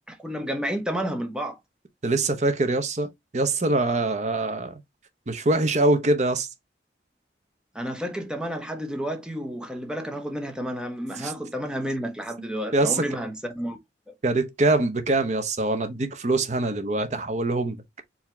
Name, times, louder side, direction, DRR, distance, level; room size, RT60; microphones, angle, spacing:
voice 1, 0.1-1.6 7.7-13.8 14.1-14.2, equal, 5° right, 0.8 m, -31 dB
voice 2, 2.0-4.8 5.3-6.5 10.6-10.7 11.2-11.3 12.7-13.0 14.2-17.8, right 2 dB, 40° right, 0.8 m, -24 dB
4.8 x 2.8 x 3.4 m
head